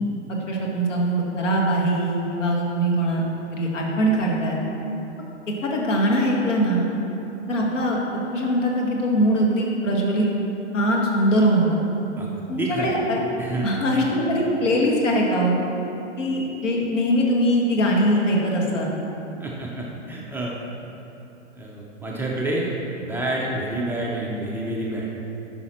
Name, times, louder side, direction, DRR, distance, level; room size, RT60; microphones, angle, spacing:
voice 1, 0.5-3.2 3.5-4.6 5.6-6.9 7.5-8.0 8.3-10.3 10.7-11.8 12.5-13.2 13.6-15.6 16.2-18.9, equal, 85° left, -2 dB, 1.8 m, -21 dB
voice 2, 12.2-12.9 13.4-13.8 19.4-20.6 21.6-22.7 23.0-25.2, right 2 dB, 5° right, -4 dB, 0.4 m, -28 dB
8.6 x 5.7 x 4.4 m, 3.0 s
hypercardioid pair, 130°, 36 cm